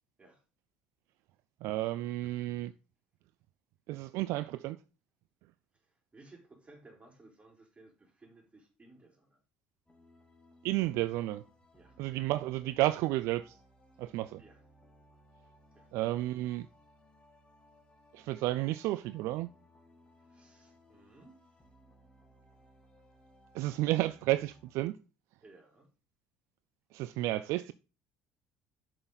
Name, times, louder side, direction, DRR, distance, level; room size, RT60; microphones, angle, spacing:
voice 1, 1.6-2.7 3.9-4.8 10.6-11.4 12.0-13.6 14.0-14.4 15.9-16.7 18.1-19.5 23.5-25.0 26.9-27.7, right 16 dB, 65° right, 0.4 m, -32 dB
voice 2, 5.7-9.4 11.7-12.0 14.4-14.6 15.7-15.9 20.2-21.4 25.4-25.9, right 2 dB, 25° right, 3.9 m, -58 dB
sound 1, 9.9-24.7, equal, 15° left, 2.9 m, -63 dB
7.6 x 6.3 x 4.0 m
hypercardioid pair, 65°, 5 cm